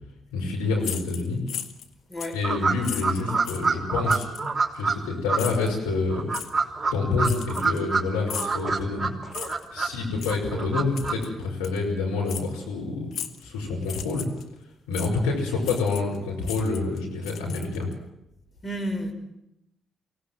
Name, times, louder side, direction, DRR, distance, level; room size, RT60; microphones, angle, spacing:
voice 1, 0.3-1.4 2.3-6.3 6.9-9.1 9.7-13.1 13.4-14.3 14.9-17.9, left 3 dB, 85° left, 5.9 m, -27 dB
sound 1, 0.8-1.9 2.2-2.4 2.8-3.7 4.1-4.5 5.4-5.7 6.3-6.5 7.2-7.9 8.3-8.6 9.3-9.7 10.2-10.4 11.0-11.3 11.6-11.8 12.3-12.5 13.1-13.4 13.8-14.4 14.9-15.1 15.6-16.2 16.4-17.9, left 10 dB, 70° left, 1.5 m, -36 dB
sound 2, 2.4-4.9 5.3-5.4 6.1-8.0 8.3-9.9 10.3-11.1, right 4 dB, 25° right, 3.6 m, -26 dB
voice 2, 18.6-19.1, equal, 35° left, 5.7 m, -30 dB
24.5 x 18.0 x 7.9 m
hypercardioid pair, 45°, 0 cm